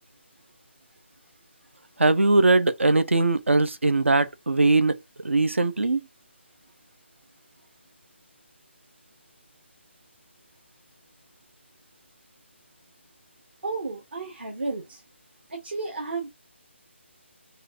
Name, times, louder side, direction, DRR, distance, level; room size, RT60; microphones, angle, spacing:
voice 1, 2.0-5.0 5.2-6.1, right 3 dB, 75° right, 0.6 m, -20 dB
voice 2, 13.6-15.0 15.5-16.3, right 3 dB, 55° right, 1.1 m, -32 dB
3.8 x 2.5 x 2.6 m
figure-of-eight pair, 150°, 7 cm